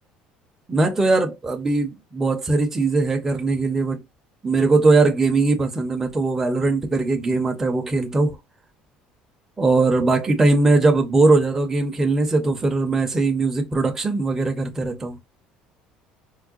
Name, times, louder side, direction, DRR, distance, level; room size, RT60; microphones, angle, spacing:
voice 1, 0.7-4.0 4.4-8.4 9.6-15.2, right 3 dB, 10° right, 0.6 m, -20 dB
4.6 x 2.1 x 2.4 m
cardioid pair, 160°, 3 cm